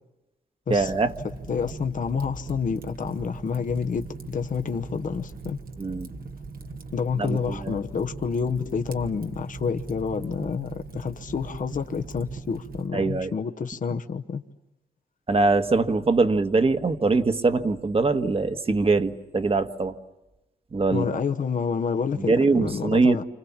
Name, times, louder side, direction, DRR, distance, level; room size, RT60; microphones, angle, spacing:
voice 1, 0.7-1.1 5.8-6.1 7.2-7.8 12.9-13.3 15.3-19.9 20.7-21.0 22.3-23.2, right 3 dB, 40° right, 1.5 m, -22 dB
Fire, 0.8-12.9, right 3 dB, 70° right, 1.6 m, -40 dB
voice 2, 1.5-5.6 6.9-14.4 20.9-23.2, left 5 dB, 60° left, 1.0 m, -28 dB
29.5 x 26.5 x 7.3 m
cardioid pair, 90°, 16 cm